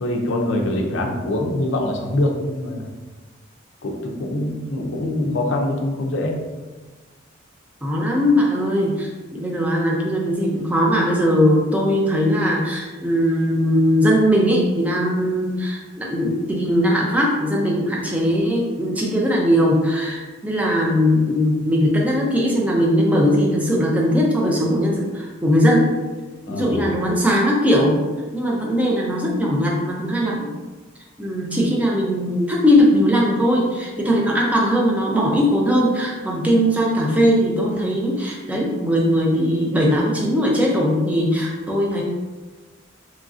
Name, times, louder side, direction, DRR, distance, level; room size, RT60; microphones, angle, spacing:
voice 1, 0.0-2.9 3.8-6.4 26.5-26.8, left 1 dB, 65° left, 2 dB, 0.5 m, -24 dB
voice 2, 5.0-5.4 7.8-25.9 26.5-28.0 28.3-30.5 31.2-42.0, equal, 5° right, -2 dB, 0.4 m, -19 dB
3.0 x 2.5 x 2.4 m, 1.3 s
head